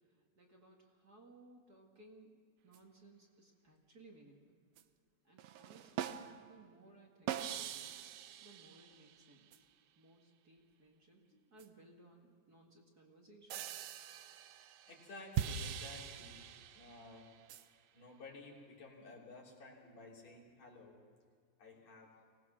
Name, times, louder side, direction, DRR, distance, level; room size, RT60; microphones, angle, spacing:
voice 1, 0.1-4.6 5.2-7.8 8.4-9.6 10.0-11.2 11.5-13.8 22.0-22.1, right 2 dB, 35° right, 1 dB, 2.0 m, -62 dB
sound 1, 2.7-2.8 4.8-4.9 5.4-6.6 7.3-9.6 11.6-11.7 13.5-17.7, right 9 dB, 70° right, 1.6 m, -43 dB
voice 2, 14.9-16.4 16.7-17.3 17.9-21.0 21.6-22.2, left 3 dB, 65° left, -3 dB, 4.7 m, -54 dB
24.5 x 18.5 x 6.2 m, 2.1 s
omnidirectional pair, 3.3 m